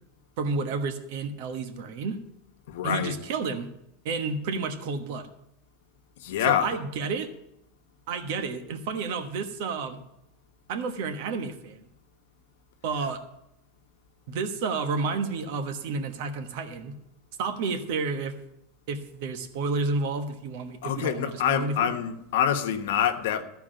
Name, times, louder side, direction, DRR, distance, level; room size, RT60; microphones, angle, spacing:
voice 1, 0.4-2.2 2.8-3.7 4.0-5.3 6.5-7.3 8.1-10.0 10.7-11.8 12.8-13.2 14.3-16.9 17.4-18.3 18.9-21.9, right 4 dB, 55° right, 8 dB, 1.2 m, -30 dB
voice 2, 2.7-3.1 6.2-6.8 20.8-23.4, left 9 dB, 75° left, 6 dB, 1.2 m, -26 dB
13.5 x 4.8 x 9.0 m, 0.84 s
supercardioid pair, 165°, 0 cm